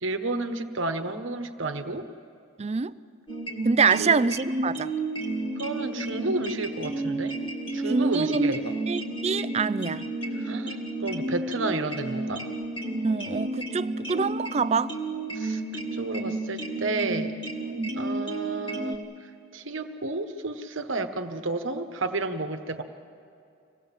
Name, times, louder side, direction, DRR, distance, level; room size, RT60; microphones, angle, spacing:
voice 1, 0.0-2.1 4.0-4.2 5.6-7.4 7.7-8.7 10.3-12.5 15.3-15.6 15.9-17.3 18.0-22.8, right 2 dB, 60° right, 1.2 m, -31 dB
voice 2, 2.6-2.9 3.6-4.9 7.9-8.5 8.9-10.0 13.0-14.9 17.8-17.9, right 5 dB, 30° right, 0.4 m, -25 dB
sound 1, 3.3-19.0, right 2 dB, 25° left, 2.1 m, -32 dB
25.5 x 18.0 x 7.4 m
head